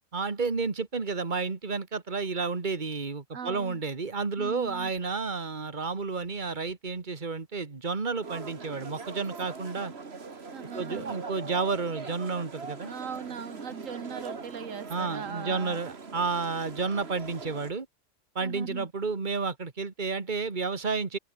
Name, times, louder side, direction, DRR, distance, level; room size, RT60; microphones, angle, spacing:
voice 1, 0.1-9.9 10.7-12.9 14.9-17.9 18.4-21.2, right 4 dB, 40° right, 2.0 m, -31 dB
voice 2, 3.3-3.8 4.4-4.9 10.5-11.1 12.8-15.8 18.4-18.9, right 7 dB, 85° right, 1.7 m, -40 dB
sound 1, 8.2-17.7, right 4 dB, 55° right, 2.2 m, -41 dB
open air
omnidirectional pair, 1.3 m